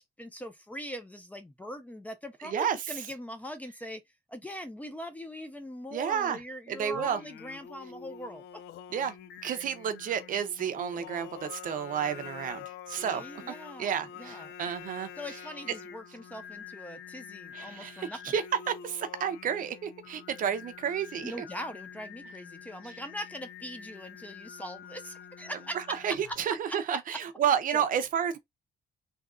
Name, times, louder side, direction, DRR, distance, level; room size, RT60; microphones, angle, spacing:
voice 1, 0.0-4.0 4.3-8.4 12.9-14.5 15.2-18.4 21.2-25.8 26.2-26.4 27.1-27.2 27.7-27.8, equal, 10° left, 0.5 m, -41 dB
voice 2, 2.4-2.8 5.9-6.4 6.7-7.2 8.9-9.1 9.4-13.3 13.8-15.1 17.5-21.3 25.7-28.4, right 8 dB, 50° right, 0.6 m, -31 dB
Singing, 6.9-26.5, left 8 dB, 80° left, 0.5 m, -47 dB
3.6 x 2.8 x 2.4 m
cardioid pair, 170°, 17 cm